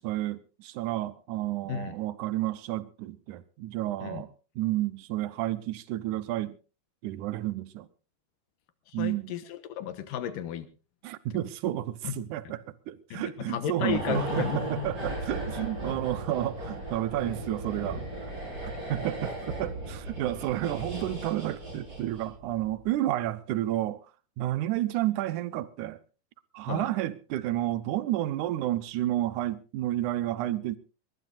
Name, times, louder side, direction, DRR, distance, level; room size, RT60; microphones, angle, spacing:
voice 1, 0.0-4.3 4.6-6.6 7.0-7.9 8.9-9.3 11.0-12.6 12.9-18.0 18.6-24.0 24.4-26.0 26.5-30.8, right 14 dB, 70° right, 2.2 m, -31 dB
voice 2, 8.9-10.7 11.3-11.4 12.0-12.2 12.4-12.5 13.1-14.6 26.7-26.9, left 10 dB, 75° left, 2.8 m, -34 dB
sound 1, 13.9-22.4 22.7-22.9, right 1 dB, 30° right, 5.5 m, -36 dB
21.5 x 19.5 x 2.5 m
omnidirectional pair, 4.0 m